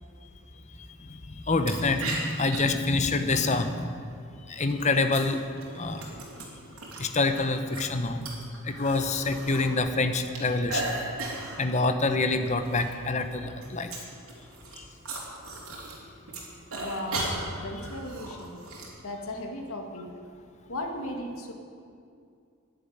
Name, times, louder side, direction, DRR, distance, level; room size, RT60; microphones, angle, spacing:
voice 1, 1.2-3.9 4.5-5.4 5.8-6.1 7.0-8.2 8.7-10.9 11.6-13.9 17.2-17.3, left 3 dB, 35° left, 8 dB, 0.8 m, -26 dB
sound 1, 1.6-1.7 2.0-2.6 3.3-3.8 4.6-7.0 7.4-9.7 9.9-11.6 12.0-12.2 12.5-13.0 13.2-16.0 16.3-18.9, right 2 dB, 80° right, 3.4 m, -36 dB
voice 2, 16.8-18.6 19.0-20.1 20.7-21.5, left 1 dB, 80° left, 3 dB, 2.0 m, -36 dB
11.5 x 10.5 x 8.9 m, 2.4 s
head